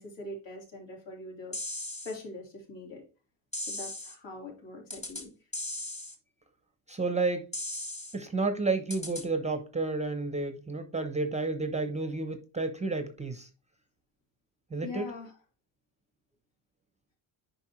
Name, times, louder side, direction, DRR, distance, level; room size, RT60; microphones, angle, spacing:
voice 1, 0.0-1.6 2.0-3.0 3.7-5.4 14.8-15.3, left 2 dB, 65° left, -1 dB, 3.7 m, -42 dB
sound 1, 1.5-2.1 3.5-4.1 4.9-5.2 5.5-6.1 7.5-8.1 8.9-9.2, left 1 dB, 15° left, 1.5 m, -37 dB
voice 2, 6.9-7.5 8.1-13.5 14.7-15.1, right 3 dB, 15° right, 8 dB, 0.7 m, -31 dB
9.7 x 5.3 x 3.1 m, 0.35 s
cardioid pair, 155°, 49 cm